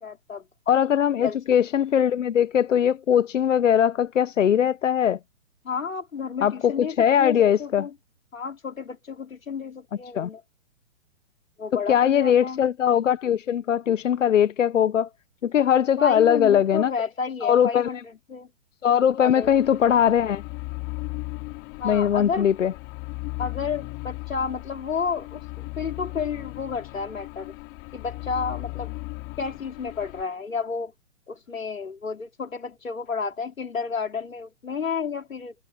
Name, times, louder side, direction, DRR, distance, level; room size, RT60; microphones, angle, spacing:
voice 1, 0.0-0.5 1.2-1.4 5.6-7.9 8.3-10.4 11.6-12.6 16.0-18.5 19.2-19.6 21.8-22.5 23.4-27.5 27.9-28.9 29.4-30.9 31.3-35.5, left 5 dB, 85° left, 3.2 m, -31 dB
voice 2, 0.7-5.2 6.4-7.9 10.1-10.3 11.7-15.1 15.4-16.9 17.4-17.9 18.8-20.4 21.8-22.7, left 9 dB, 70° left, 1.2 m, -20 dB
sound 1, 19.4-30.2, left 27 dB, 30° left, 3.6 m, -37 dB
hypercardioid pair, 135°, 39 cm